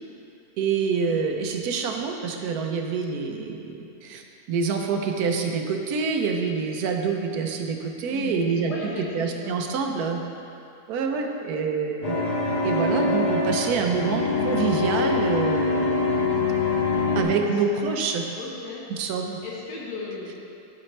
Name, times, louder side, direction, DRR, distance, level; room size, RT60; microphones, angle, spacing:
voice 1, 0.6-4.2 4.5-10.2 10.9-12.2 12.6-16.5 17.1-18.3 19.0-19.4, right 5 dB, 70° right, 3 dB, 1.1 m, -26 dB
voice 2, 8.1-10.2 17.3-17.9 18.4-18.8 19.4-20.6, left 3 dB, 85° left, -5 dB, 1.6 m, -36 dB
sound 1, 12.0-17.2, left 3 dB, 50° left, 1.4 m, -24 dB
12.0 x 4.3 x 3.2 m, 2.7 s
omnidirectional pair, 1.7 m